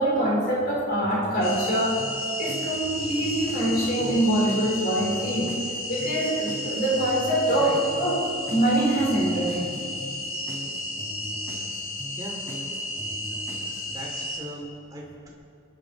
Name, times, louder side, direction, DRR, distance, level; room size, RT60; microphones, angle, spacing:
voice 1, 0.0-2.0 2.4-5.5 5.9-8.2 8.5-9.7, right 1 dB, 45° left, -4 dB, 4.2 m, -24 dB
sound 1, 1.0-14.0, equal, 10° left, 3.8 m, -40 dB
sound 2, 1.4-14.4, left 1 dB, 75° left, 2.5 m, -33 dB
voice 2, 7.5-7.8 12.2-12.5 13.9-15.3, right 1 dB, 15° right, -2 dB, 3.0 m, -39 dB
28.0 x 11.0 x 4.2 m, 2.6 s
head